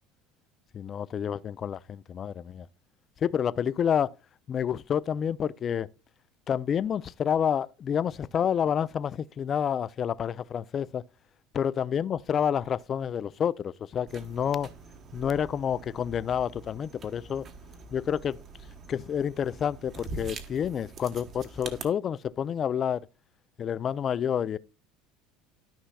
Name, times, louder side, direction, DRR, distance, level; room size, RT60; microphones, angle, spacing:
voice 1, 0.7-2.7 3.2-4.1 4.5-5.9 6.5-11.0 11.5-14.7 15.1-17.4 17.9-18.4 18.9-23.1 23.6-24.6, left 8 dB, 30° left, 0.4 m, -29 dB
sound 1, 14.1-21.8, right 3 dB, 35° right, 1.2 m, -44 dB
13.0 x 5.6 x 2.3 m
cardioid pair, 140°, 0 cm